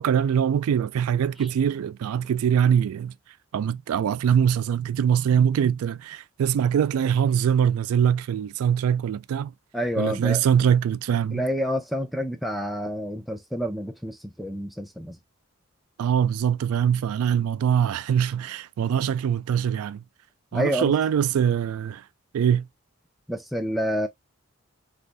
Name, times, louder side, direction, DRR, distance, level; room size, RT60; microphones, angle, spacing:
voice 1, 0.0-3.1 3.5-9.5 10.0-11.4 16.0-20.0 20.5-22.0 22.3-22.7, right 8 dB, 85° right, 0.3 m, -23 dB
voice 2, 9.7-10.4 11.3-15.2 20.5-20.9 23.3-24.1, equal, ahead, 0.4 m, -28 dB
3.3 x 2.5 x 2.5 m
head